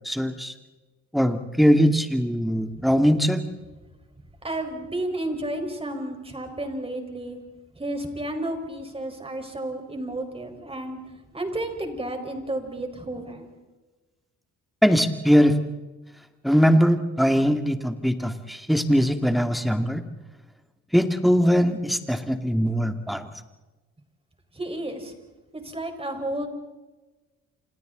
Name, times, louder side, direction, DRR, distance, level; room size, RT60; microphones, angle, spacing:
voice 1, 0.1-0.5 1.1-3.4 14.8-15.6 16.4-20.0 20.9-23.3, equal, ahead, 7 dB, 2.1 m, -21 dB
voice 2, 4.4-7.4 7.7-11.0 11.3-13.5 24.5-25.1 25.5-26.5, right 1 dB, 20° right, 5 dB, 4.9 m, -32 dB
30.0 x 26.5 x 4.0 m, 1.2 s
cardioid pair, 90°, 30 cm